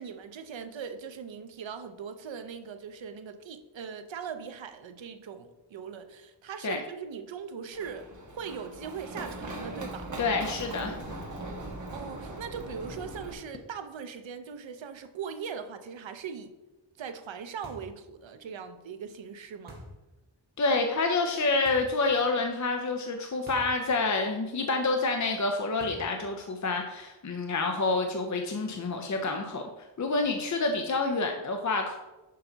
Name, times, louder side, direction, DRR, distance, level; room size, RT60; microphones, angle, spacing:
voice 1, 0.0-8.1 8.3-10.1 11.9-16.5 17.0-19.8, right 6 dB, 90° right, 9 dB, 0.7 m, -40 dB
Run, 7.7-13.3, right 1 dB, 40° right, 1.2 m, -40 dB
voice 2, 10.2-11.0 20.6-32.0, left 3 dB, 40° left, 4 dB, 0.6 m, -28 dB
sound 1, 17.6-18.0 19.7-20.0 21.7-22.0 23.5-23.8 24.1-24.2 25.8-26.2, equal, 20° right, 2.2 m, -46 dB
6.6 x 5.6 x 3.9 m, 1.1 s
wide cardioid pair, 105°, 44 cm